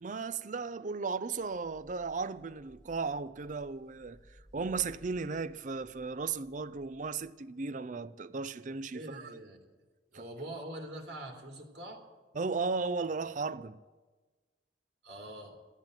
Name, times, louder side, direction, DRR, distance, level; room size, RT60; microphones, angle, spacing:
voice 1, 0.0-4.2 4.5-9.3 10.1-10.3 12.3-13.8, right 4 dB, 45° right, 0.5 m, -35 dB
sound 1, 1.3-7.3, equal, 5° left, 4.0 m, -60 dB
voice 2, 8.9-9.6 10.1-12.0 15.0-15.6, right 1 dB, 70° right, 2.8 m, -44 dB
14.0 x 9.0 x 8.9 m
head